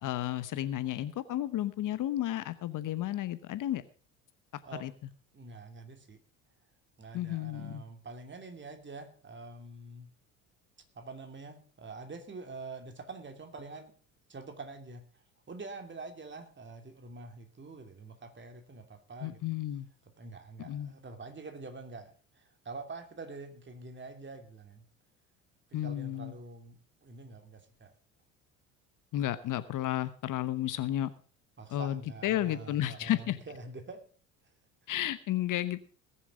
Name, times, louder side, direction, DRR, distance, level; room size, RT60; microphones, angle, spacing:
voice 1, 0.0-3.8 4.8-4.9 7.1-7.8 19.2-19.9 20.6-20.9 25.7-26.3 29.1-31.1 31.7-33.4 34.9-35.8, left 13 dB, 50° left, 14 dB, 1.1 m, -32 dB
voice 2, 5.3-6.2 7.0-10.1 10.9-13.9 14.3-15.0 15.5-19.4 20.2-24.9 25.8-27.9 31.6-34.0, right 3 dB, 30° right, 6 dB, 2.9 m, -46 dB
20.0 x 7.3 x 5.0 m, 0.40 s
hypercardioid pair, 65°, 40 cm